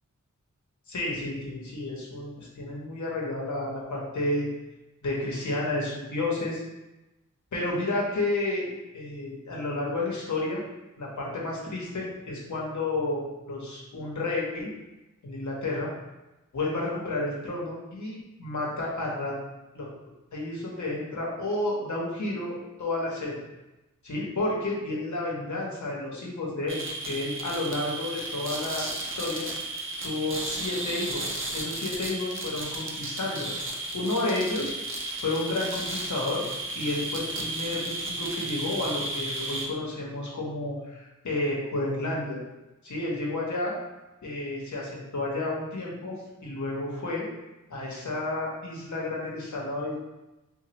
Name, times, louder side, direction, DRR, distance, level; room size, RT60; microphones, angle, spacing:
voice 1, 0.9-4.5 5.0-6.6 7.5-8.7 8.9-10.6 11.0-14.7 15.2-15.9 16.5-19.4 19.7-19.9 20.3-23.4 24.0-29.5 30.0-34.7 35.2-36.5 36.7-42.4 42.8-43.7 44.2-46.1 46.4-47.3 47.7-49.9, left 2 dB, 60° left, -3 dB, 0.8 m, -31 dB
sound 1, 26.7-39.7, right 2 dB, 40° right, 0.5 m, -34 dB
3.1 x 2.2 x 2.9 m, 1.0 s
wide cardioid pair, 65°, 32 cm